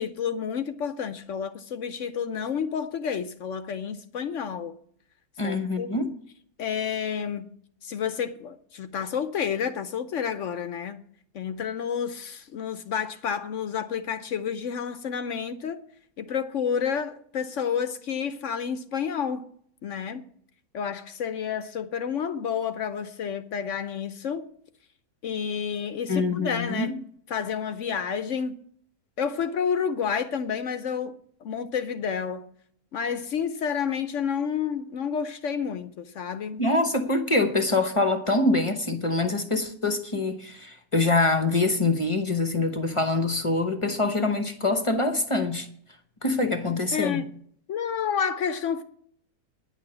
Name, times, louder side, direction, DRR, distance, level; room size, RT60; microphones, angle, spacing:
voice 1, 0.0-4.7 5.4-5.9 6.6-7.5 7.8-11.0 11.3-15.8 16.2-19.5 19.8-20.3 20.7-24.4 25.2-27.0 27.3-28.6 29.2-32.5 32.9-36.6 46.9-47.2 47.7-48.8, left 7 dB, 60° left, 0.8 m, -30 dB
voice 2, 5.4-6.1 26.1-26.9 36.6-45.7 46.2-47.2, left 2 dB, 25° left, 0.7 m, -25 dB
10.0 x 6.5 x 8.6 m
omnidirectional pair, 1.7 m